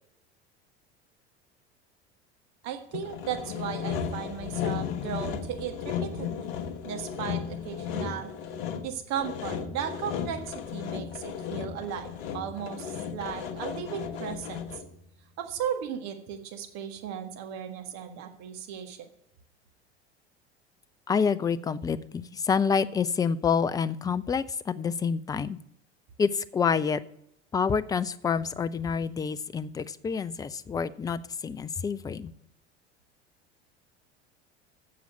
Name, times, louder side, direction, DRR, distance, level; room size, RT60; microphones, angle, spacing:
voice 1, 2.6-6.5 6.8-8.3 8.8-14.6 15.4-19.1, right 9 dB, 50° right, 4 dB, 1.7 m, -36 dB
Sawing, 2.9-15.0, left 8 dB, 60° left, 1.1 m, -35 dB
voice 2, 21.1-25.6 26.2-27.0 27.5-32.3, left 6 dB, 10° left, 17 dB, 0.3 m, -28 dB
7.5 x 7.0 x 8.2 m, 0.78 s
figure-of-eight pair, 75°, 34 cm